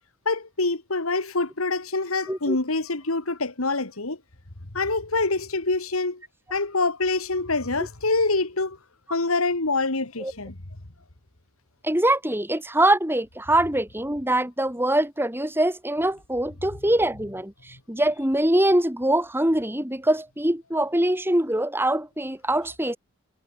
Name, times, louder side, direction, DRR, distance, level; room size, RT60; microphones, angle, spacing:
voice 1, 0.3-4.2 4.7-6.2 6.5-8.8 9.1-10.6, left 3 dB, 75° left, 2.3 m, -25 dB
voice 2, 11.8-23.0, right 1 dB, 10° right, 4.7 m, -23 dB
head